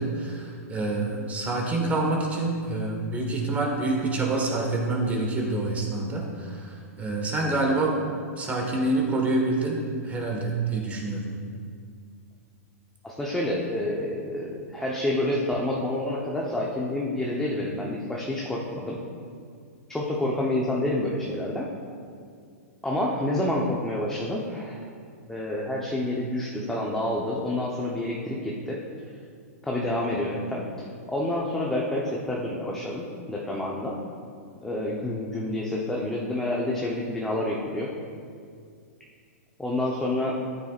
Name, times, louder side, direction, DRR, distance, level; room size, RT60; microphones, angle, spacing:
voice 1, 0.0-8.0 8.4-11.3, right 2 dB, 15° right, -1 dB, 1.5 m, -27 dB
voice 2, 13.0-19.0 19.9-21.7 22.8-24.8 25.3-28.8 29.6-30.7 31.1-34.0 34.6-37.9 39.6-40.4, left 1 dB, 5° left, -4 dB, 0.9 m, -28 dB
14.0 x 9.2 x 2.5 m, 2.2 s
hypercardioid pair, 140°, 8 cm